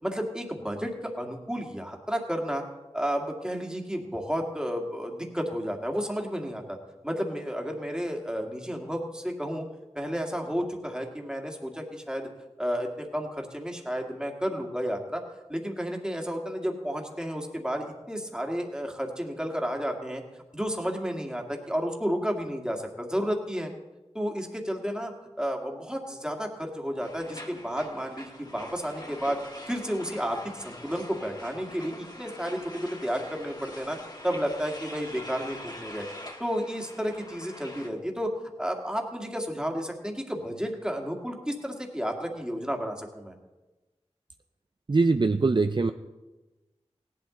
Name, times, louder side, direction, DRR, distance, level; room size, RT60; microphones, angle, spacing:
voice 1, 0.0-2.6 2.9-6.8 7.0-9.6 10.0-12.3 12.6-15.2 15.5-20.2 20.5-23.7 24.1-25.1 25.4-29.4 29.7-34.0 34.2-36.1 36.4-38.3 38.6-43.3, equal, 5° right, 2 dB, 1.9 m, -32 dB
sound 1, 27.0-37.9, left 1 dB, 35° left, 1.6 m, -44 dB
voice 2, 44.9-45.9, right 3 dB, 45° right, 8 dB, 0.4 m, -22 dB
17.0 x 11.5 x 3.8 m, 1.1 s
wide cardioid pair, 50°, 11 cm